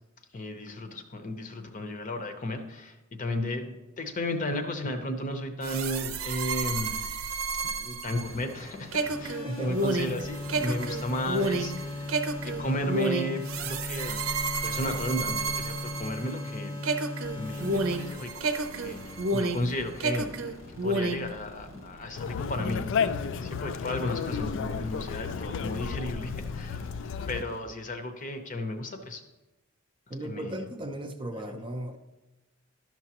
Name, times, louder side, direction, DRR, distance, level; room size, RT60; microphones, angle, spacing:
voice 1, 0.3-6.9 7.8-12.1 12.4-14.2 14.6-16.8 17.4-20.5 20.8-22.8 23.4-26.9 27.3-29.2 30.2-30.6 31.3-31.6, left 1 dB, 40° left, 0.8 m, -34 dB
sound 1, 5.6-16.5 16.8-19.7 20.0-21.3, right 3 dB, 90° right, 0.6 m, -30 dB
sound 2, 8.1-27.6, left 2 dB, 90° left, 2.0 m, -40 dB
voice 2, 9.4-9.8 30.1-32.0, right 1 dB, 25° right, 0.5 m, -36 dB
Conversation, 22.2-27.4, left 6 dB, 65° left, 0.3 m, -32 dB
11.5 x 5.9 x 2.9 m
head